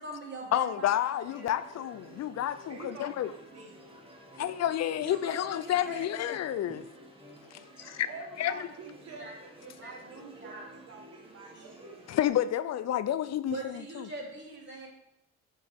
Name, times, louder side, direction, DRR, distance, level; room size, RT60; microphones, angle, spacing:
voice 1, 0.0-0.9 1.3-1.5 5.0-6.1 7.8-8.0 9.2-9.3 9.8-9.9 10.4-10.7 11.5-11.7 13.5-14.9, right 2 dB, 40° right, 3.3 m, -42 dB
voice 2, 0.5-3.3 4.4-6.8 7.5-8.1 8.4-8.5 12.1-14.1, left 11 dB, 60° left, 0.5 m, -30 dB
sound 1, 1.2-12.3, equal, 20° right, 1.6 m, -52 dB
voice 3, 2.7-3.9 8.0-12.2, right 3 dB, 55° right, 1.5 m, -47 dB
9.1 x 6.5 x 3.6 m
cardioid pair, 90°, 30 cm